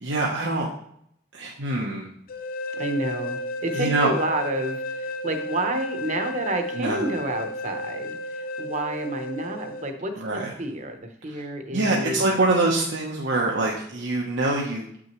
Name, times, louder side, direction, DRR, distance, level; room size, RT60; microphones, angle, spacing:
voice 1, 0.0-0.7 1.3-2.1 3.7-4.1 6.8-7.0 10.2-10.5 11.3-11.4 11.7-14.8, right 2 dB, 90° right, -2 dB, 0.9 m, -24 dB
sound 1, 2.3-9.9, left 1 dB, 55° left, 0.5 m, -33 dB
voice 2, 2.7-12.4, right 1 dB, 45° right, 6 dB, 0.9 m, -30 dB
7.8 x 6.1 x 3.1 m, 0.69 s
head